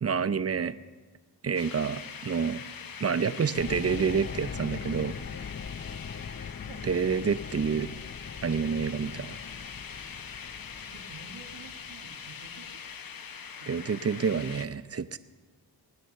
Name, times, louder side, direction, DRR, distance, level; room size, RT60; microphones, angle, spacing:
voice 1, 0.0-0.8 1.4-2.6 3.0-5.1 6.8-7.9 8.4-9.4 13.7-15.2, right 6 dB, 35° right, 13 dB, 0.6 m, -28 dB
sound 1, 1.5-14.7, left 7 dB, 55° left, 0.8 m, -43 dB
sound 2, 3.6-12.7, left 6 dB, 30° left, 0.4 m, -41 dB
voice 2, 10.8-12.7, right 4 dB, 90° right, 5 dB, 1.8 m, -50 dB
18.5 x 9.9 x 6.6 m, 1.3 s
cardioid pair, 70°, 42 cm